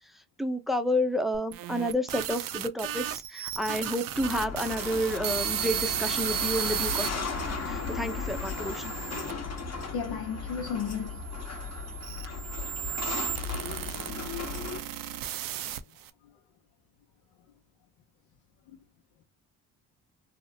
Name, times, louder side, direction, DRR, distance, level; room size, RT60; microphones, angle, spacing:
voice 1, 0.4-8.9, left 1 dB, ahead, 0.5 m, -30 dB
sound 1, 1.3-7.1 7.8-9.3 10.1-16.1, right 10 dB, 65° right, 0.5 m, -35 dB
sound 2, 4.1-14.8, left 4 dB, 45° left, 0.9 m, -36 dB
voice 2, 9.9-11.2, left 6 dB, 80° left, 0.7 m, -33 dB
2.8 x 2.0 x 2.6 m
supercardioid pair, 65°, 37 cm